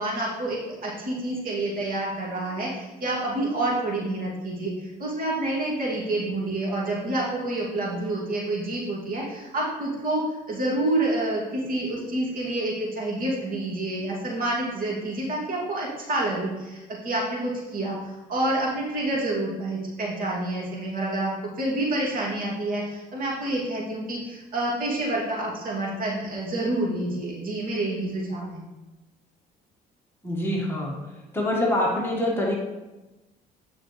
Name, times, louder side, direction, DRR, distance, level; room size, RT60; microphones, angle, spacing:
voice 1, 0.0-10.2 10.5-18.0 18.3-21.3 21.6-28.7, right 2 dB, 60° right, -4 dB, 2.7 m, -28 dB
voice 2, 30.2-30.9 31.3-32.6, left 1 dB, 15° left, -3 dB, 1.8 m, -25 dB
9.9 x 6.1 x 3.3 m, 1.1 s
cardioid pair, 110°, 17 cm